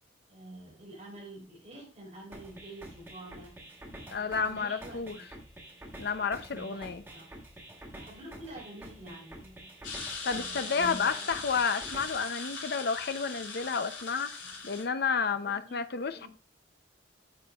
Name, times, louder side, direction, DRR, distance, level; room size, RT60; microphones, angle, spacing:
voice 1, 0.3-3.6 4.1-5.3 6.5-6.8 7.1-7.3 7.9-9.7 10.3-11.3 14.4-14.6 15.4-15.8 16.1-16.3, right 1 dB, 35° right, 4.6 m, -47 dB
sound 1, 2.3-12.3, right 1 dB, 10° right, 1.4 m, -48 dB
voice 2, 4.1-5.2 6.0-7.0 10.2-14.3 14.6-16.3, left 5 dB, 60° left, 0.6 m, -31 dB
sound 2, 9.8-14.8, left 4 dB, 80° left, 2.9 m, -40 dB
9.0 x 7.3 x 2.4 m
head